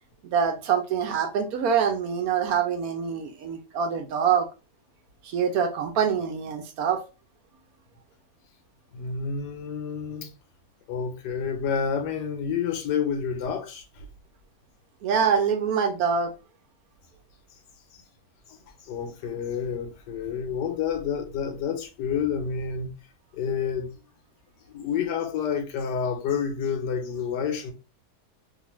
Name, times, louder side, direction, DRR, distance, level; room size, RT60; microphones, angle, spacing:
voice 1, 0.2-4.5 5.2-7.0 15.0-16.3, right 7 dB, 70° right, 1.0 m, -25 dB
voice 2, 8.9-10.3 10.9-14.1 18.8-22.9 23.3-24.0 24.7-27.7, left 7 dB, 90° left, 1.3 m, -29 dB
2.9 x 2.4 x 2.9 m
omnidirectional pair, 1.8 m